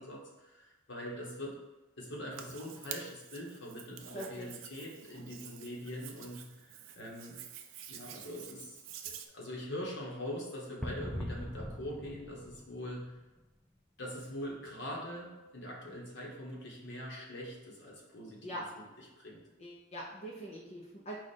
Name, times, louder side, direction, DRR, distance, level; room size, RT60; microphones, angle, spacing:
voice 1, 0.0-1.6 2.0-7.4 7.9-8.8 9.0-13.2 14.0-18.4 19.0-19.4, equal, 65° left, -3 dB, 1.2 m, -43 dB
Hands, 2.3-9.3, right 9 dB, 70° right, 0.5 m, -48 dB
voice 2, 4.1-4.5 18.4-18.6 19.6-21.2, equal, 35° left, -5 dB, 0.7 m, -43 dB
sound 1, 10.8-13.5, left 1 dB, ahead, 0.3 m, -42 dB
4.9 x 2.4 x 4.2 m, 1.1 s
head